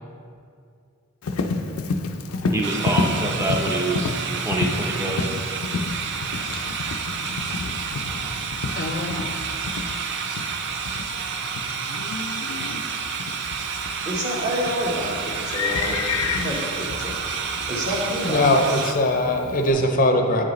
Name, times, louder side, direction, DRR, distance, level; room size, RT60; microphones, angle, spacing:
Livestock farm animals working animals, 1.2-19.7, left 3 dB, 90° left, 0.4 m, -30 dB
voice 1, 2.5-4.1 4.4-5.2, right 1 dB, 15° right, 0 dB, 0.6 m, -26 dB
sound 1, 2.6-18.9, right 6 dB, 55° right, 0.4 m, -30 dB
voice 2, 8.8-9.4 9.6-9.8 18.2-20.4, left 1 dB, 40° left, 4 dB, 0.5 m, -21 dB
voice 3, 14.0-17.2 17.7-18.8, equal, 35° right, -3 dB, 1.2 m, -28 dB
8.5 x 4.8 x 3.1 m, 2.3 s
head